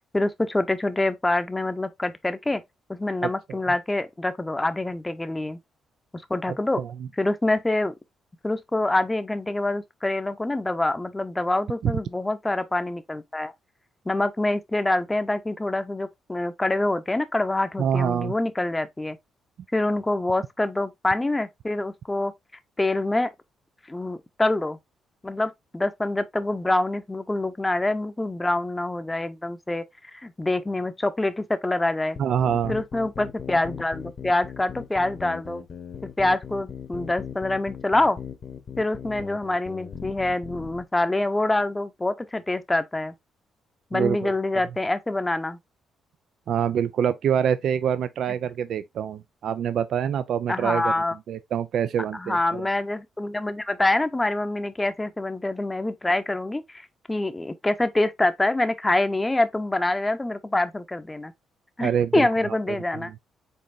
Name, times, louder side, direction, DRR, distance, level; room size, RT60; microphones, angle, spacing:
voice 1, 0.1-2.6 2.9-5.6 6.1-6.8 7.1-7.9 8.4-13.5 14.1-19.2 19.7-22.3 22.8-23.3 23.9-24.8 25.2-29.8 30.1-32.2 32.7-35.7 36.0-38.2 38.8-43.1 43.9-45.6 50.5-51.2 52.1-61.3 61.8-63.1, left 2 dB, 15° left, 0.7 m, -25 dB
voice 2, 3.2-3.6 6.8-6.9 11.8-11.9 17.8-18.3 32.2-32.8 43.9-44.3 46.5-50.9 51.3-52.7 61.8-63.1, right 8 dB, 65° right, 0.3 m, -26 dB
sound 1, 32.1-40.8, left 7 dB, 50° left, 1.0 m, -38 dB
5.4 x 3.8 x 2.6 m
cardioid pair, 90°, 0 cm